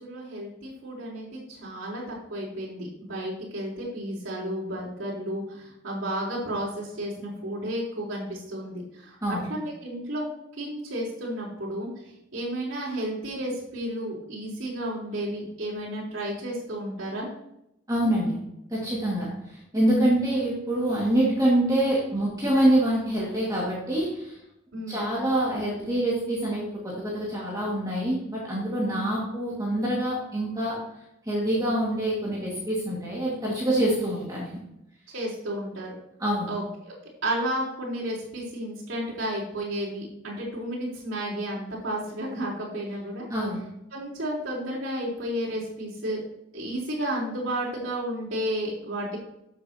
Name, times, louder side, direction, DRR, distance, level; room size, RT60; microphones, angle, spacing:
voice 1, 0.0-10.2 10.6-17.3 24.7-25.1 28.9-29.2 35.1-36.0 36.5-36.9 37.2-43.2 43.9-46.2 46.5-49.2, right 1 dB, 70° right, -8 dB, 4.0 m, -32 dB
voice 2, 17.9-18.4 18.7-24.3 24.9-30.8 31.3-34.6 36.2-36.5 43.3-43.6, right 1 dB, 15° right, -5 dB, 2.1 m, -25 dB
12.5 x 7.1 x 2.9 m, 0.82 s
head